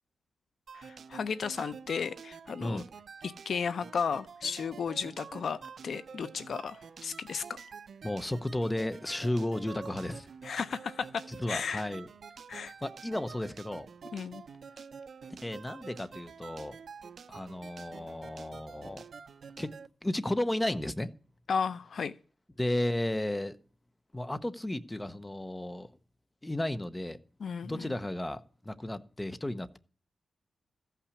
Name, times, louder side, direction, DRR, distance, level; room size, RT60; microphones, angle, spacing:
voice 1, 0.7-2.8 3.2-7.4 10.4-11.8 12.5-12.7 14.1-14.4 21.5-22.2 27.4-27.9, left 6 dB, 55° left, 0.5 m, -34 dB
sound 1, 0.7-19.9, right 6 dB, 55° right, 0.6 m, -48 dB
voice 2, 8.0-10.3 11.3-12.1 12.8-13.9 15.4-16.8 17.3-19.0 19.6-19.7 20.0-21.1 22.6-23.6 24.1-25.9 26.4-27.2 27.6-29.8, left 1 dB, 10° left, 0.7 m, -33 dB
14.5 x 5.8 x 8.3 m
wide cardioid pair, 160°, 0 cm